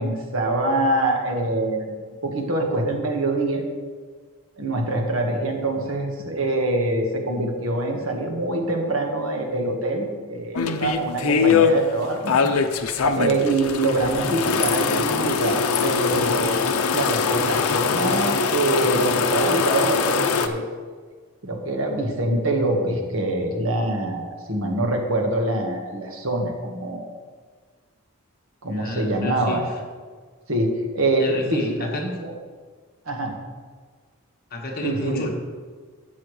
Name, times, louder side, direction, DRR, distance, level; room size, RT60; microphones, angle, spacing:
voice 1, 0.0-2.0 2.2-3.6 4.6-16.7 16.9-20.6 21.4-27.1 28.6-29.6 30.5-32.3 33.0-33.3 34.8-35.3, right 2 dB, 70° right, 2 dB, 1.5 m, -25 dB
sound 1, 10.6-11.7 12.3-20.5, left 5 dB, 85° left, 0.7 m, -22 dB
voice 2, 28.7-29.7 31.2-32.0 34.5-35.3, left 1 dB, 45° left, 0 dB, 1.6 m, -30 dB
13.0 x 8.2 x 3.2 m, 1.5 s
head